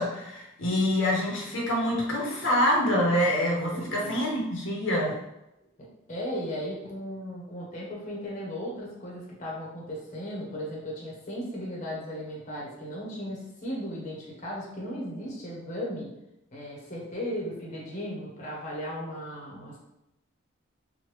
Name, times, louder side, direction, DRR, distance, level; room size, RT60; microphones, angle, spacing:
voice 1, 0.0-5.2, left 1 dB, 70° left, -2 dB, 0.7 m, -26 dB
voice 2, 3.6-4.1 5.8-16.1 16.5-19.8, equal, 35° left, -5 dB, 0.7 m, -36 dB
3.0 x 2.2 x 3.1 m, 0.88 s
head